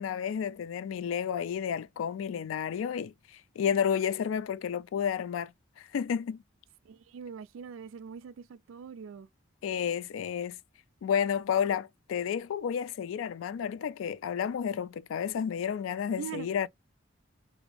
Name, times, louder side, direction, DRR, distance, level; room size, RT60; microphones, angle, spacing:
voice 1, 0.0-3.1 3.6-5.5 5.8-6.4 9.6-10.6 11.0-16.7, left 8 dB, 80° left, 0.3 m, -31 dB
voice 2, 6.9-9.3 16.2-16.5, right 7 dB, 85° right, 0.3 m, -42 dB
3.0 x 2.5 x 3.1 m
head